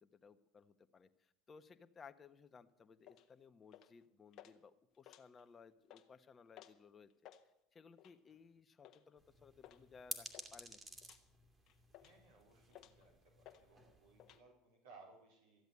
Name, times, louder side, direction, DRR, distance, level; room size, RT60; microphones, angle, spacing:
voice 1, 0.0-7.3 7.7-10.8, left 5 dB, 30° left, 10 dB, 1.1 m, -61 dB
sound 1, 3.0-3.3 3.7-4.0 4.3-4.5 4.9-5.5 5.8-6.1 6.5-6.8 7.1-7.4 8.0-8.3 8.8-9.0 9.6-9.8 10.1-10.5 11.0-11.2 11.7-12.3 12.7-13.0 13.4-13.6 13.9-14.4, left 12 dB, 55° left, 1.3 m, -59 dB
sound 2, 9.2-14.4, right 3 dB, 25° right, 2.4 m, -53 dB
voice 2, 12.0-15.7, right 3 dB, 85° right, -2 dB, 4.3 m, -63 dB
14.0 x 7.9 x 9.8 m, 0.84 s
hypercardioid pair, 85°, 0 cm